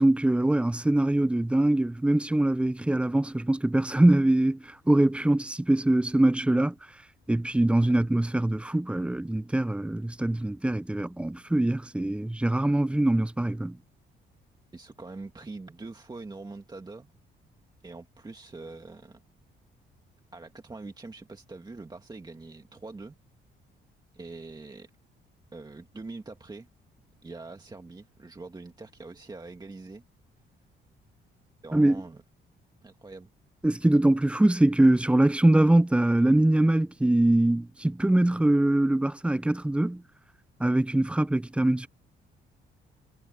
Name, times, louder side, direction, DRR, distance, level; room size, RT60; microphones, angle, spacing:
voice 1, 0.0-6.7 7.3-13.8 31.7-32.0 33.6-40.0 40.6-41.9, right 1 dB, 5° right, 0.4 m, -23 dB
voice 2, 14.7-17.1 17.8-19.2 20.3-23.1 24.1-24.9 25.5-26.7 27.2-30.0 31.6-32.2 32.8-33.3, right 3 dB, 20° right, 1.9 m, -43 dB
cardioid pair, 90°, 20 cm